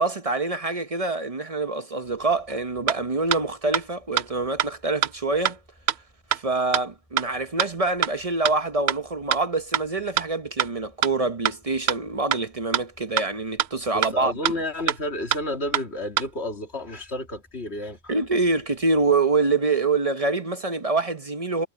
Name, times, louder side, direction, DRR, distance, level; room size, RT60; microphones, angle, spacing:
voice 1, 0.0-5.6 6.3-14.3 18.1-21.7, right 3 dB, 35° right, 0.9 m, -25 dB
sound 1, 2.0-19.2, equal, 10° left, 6.5 m, -59 dB
sound 2, 2.5-2.6 2.9-3.0 3.3-3.4 3.7-3.8 4.2-4.3 4.6-4.7 5.0-5.1 5.4-5.5 5.9-6.0 6.3-6.4 6.7-6.8 7.2-7.3 7.6-7.7 8.0-8.1 8.4-8.5 8.9-9.0 9.3-9.4 9.7-9.8 10.2-10.3 10.6-10.7 11.0-11.1 11.4-11.5 11.9-12.0 12.3-12.4 12.7-12.8 13.2-13.3 13.6-13.7 14.0-14.1 14.4-14.5 14.9-15.0 15.3-15.4 15.7-15.8 16.2-16.3, right 11 dB, 80° right, 0.9 m, -22 dB
voice 2, 13.9-18.1, left 1 dB, 90° left, 2.9 m, -31 dB
omnidirectional pair, 1.1 m